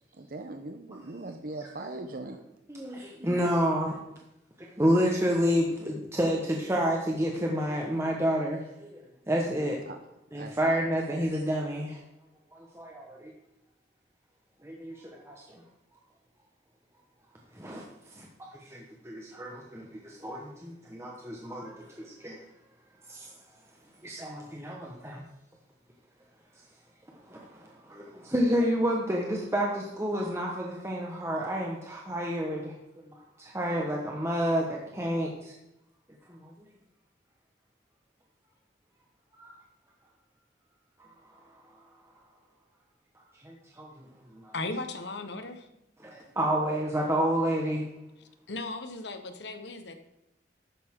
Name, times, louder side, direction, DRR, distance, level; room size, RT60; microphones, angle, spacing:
voice 1, 0.1-2.4 9.9-10.0 10.4-10.6, right 2 dB, 55° right, 5 dB, 0.8 m, -40 dB
voice 2, 2.7-4.0 4.6-9.0 9.3-9.8 10.3-12.0 12.5-13.3 14.6-15.6 17.5-17.8 18.1-18.3 18.5-22.4 23.1-23.3 24.0-25.2 27.3-32.7 33.0-35.5 36.3-36.5 39.3-39.6 43.4-44.1 44.3-44.5 46.0-47.9, equal, 15° right, -1 dB, 1.4 m, -30 dB
voice 3, 44.5-45.7 48.5-49.9, left 2 dB, 75° left, 7 dB, 1.3 m, -36 dB
12.5 x 9.4 x 3.8 m, 0.89 s
head